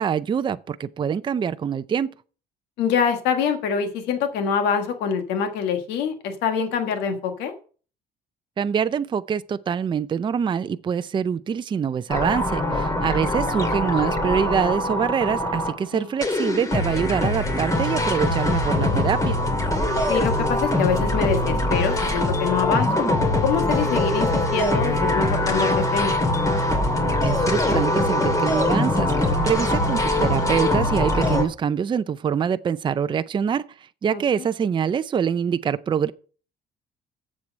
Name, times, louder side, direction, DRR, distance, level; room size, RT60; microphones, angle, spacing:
voice 1, 0.0-2.1 8.6-19.4 27.2-33.6 34.0-36.1, right 7 dB, 30° right, 0.5 m, -25 dB
voice 2, 2.8-7.5 15.9-16.1 20.1-23.1 23.4-26.1 34.1-34.2, left 6 dB, 90° left, 1.5 m, -25 dB
sound 1, 12.1-15.8 16.2-31.4, left 1 dB, 20° left, 2.4 m, -22 dB
7.5 x 7.5 x 6.3 m
cardioid pair, 110°, 17 cm